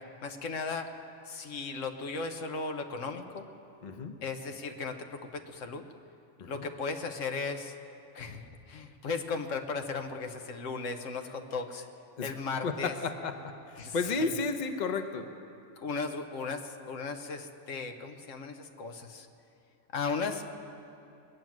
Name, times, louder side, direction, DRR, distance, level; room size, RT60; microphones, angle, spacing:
voice 1, 0.2-0.9 1.3-3.5 4.2-5.9 6.5-7.7 8.1-11.9 12.2-12.9 13.8-14.3 15.8-19.3 19.9-20.5, left 4 dB, 80° left, 6 dB, 1.4 m, -36 dB
voice 2, 3.8-4.1 6.4-6.7 12.2-12.3 12.6-15.3, left 4 dB, 40° left, 7 dB, 0.9 m, -33 dB
21.5 x 9.2 x 7.4 m, 2.7 s
omnidirectional pair, 1.3 m